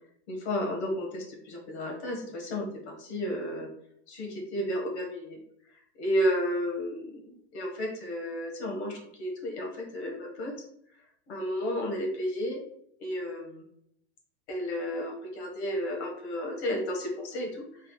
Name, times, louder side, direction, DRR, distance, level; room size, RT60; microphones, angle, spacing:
voice 1, 0.3-2.7 3.0-3.7 4.1-5.4 6.0-10.5 11.3-12.6 13.0-13.6 14.5-17.9, equal, 70° left, 1 dB, 1.4 m, -32 dB
3.5 x 2.0 x 3.9 m, 0.70 s
supercardioid pair, 135°, 34 cm